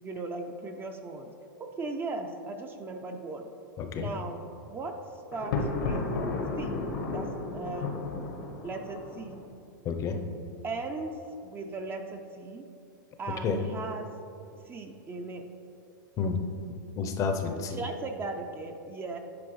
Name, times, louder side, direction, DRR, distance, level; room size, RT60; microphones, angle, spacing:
voice 1, 0.0-1.3 1.6-3.5 4.0-4.4 4.7-5.0 5.3-6.1 6.6-8.0 8.6-9.4 10.6-12.7 13.2-14.1 14.6-15.4 17.7-19.2, right 3 dB, 20° right, 5 dB, 0.4 m, -37 dB
voice 2, 3.8-4.1 9.8-10.2 13.4-13.6 16.2-16.4 17.0-17.8, left 5 dB, 30° left, 5 dB, 0.6 m, -30 dB
Thunder, 5.3-9.4, left 3 dB, 75° left, 1.0 m, -33 dB
9.6 x 4.6 x 3.1 m, 2.7 s
hypercardioid pair, 130°, 11 cm